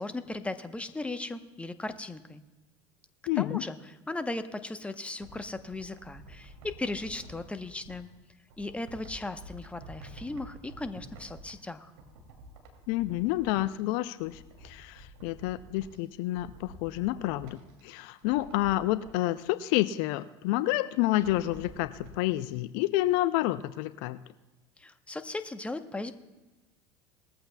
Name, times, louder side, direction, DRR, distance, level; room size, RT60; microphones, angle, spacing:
voice 1, 0.0-2.4 3.4-8.1 8.6-11.9 24.8-26.1, left 2 dB, 10° left, 9 dB, 1.0 m, -37 dB
voice 2, 3.3-3.6 12.9-17.6 17.8-24.2, left 16 dB, 60° left, 14 dB, 0.5 m, -29 dB
sound 1, 5.1-8.0 8.5-11.7 11.9-13.8 14.1-16.0 16.3-17.8 18.2-19.2 21.1-22.1 22.5-22.6, right 2 dB, 70° right, 2.8 m, -49 dB
20.0 x 14.0 x 2.3 m, 1.1 s
hypercardioid pair, 75°, 14 cm